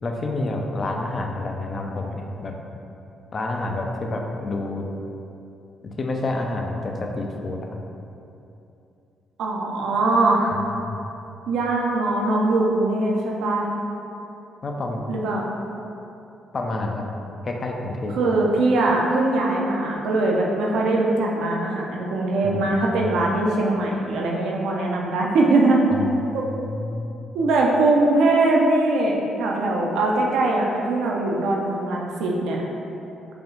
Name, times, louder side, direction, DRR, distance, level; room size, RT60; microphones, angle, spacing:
voice 1, 0.0-2.5 3.3-4.9 6.0-7.8 10.6-11.0 14.6-15.0 16.5-17.0 17.4-18.2 22.4-22.9 25.9-27.2, left 2 dB, 40° left, 1 dB, 0.5 m, -29 dB
voice 2, 9.4-10.6 11.5-13.7 15.1-15.5 18.2-25.8 26.3-26.4 27.3-32.6, right 2 dB, 80° right, -1 dB, 0.5 m, -21 dB
4.9 x 2.4 x 3.1 m, 2.8 s
cardioid pair, 90°, 0 cm